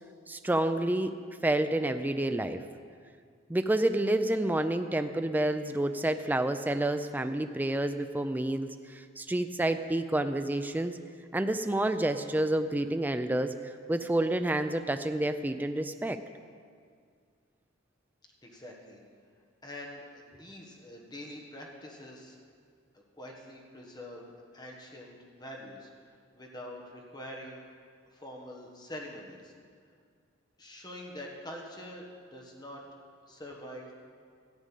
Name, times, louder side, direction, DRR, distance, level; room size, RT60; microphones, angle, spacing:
voice 1, 0.3-1.1 1.4-2.6 3.5-11.0 11.3-13.5 13.9-16.2, right 1 dB, 10° right, 8 dB, 0.3 m, -29 dB
voice 2, 18.4-19.0 19.6-22.4 22.9-25.9 26.3-27.6 28.1-29.5 30.6-32.0 32.3-32.8 33.3-34.0, left 1 dB, 20° left, -1 dB, 1.4 m, -45 dB
13.5 x 5.2 x 9.0 m, 2.1 s
head